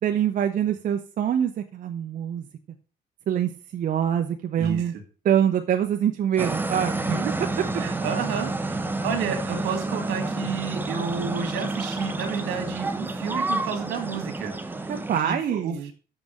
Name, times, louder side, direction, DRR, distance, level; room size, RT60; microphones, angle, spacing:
voice 1, 0.0-2.5 3.3-4.9 5.2-7.2 14.9-15.9, right 9 dB, 50° right, 5 dB, 1.0 m, -25 dB
voice 2, 4.6-4.9 7.0-7.3 7.7-14.5 15.2-15.7, right 6 dB, 80° right, 7 dB, 2.2 m, -31 dB
sound 1, 6.4-15.2, right 2 dB, 10° right, 0.9 m, -29 dB
6.5 x 6.1 x 7.3 m, 0.38 s
cardioid pair, 110°, 17 cm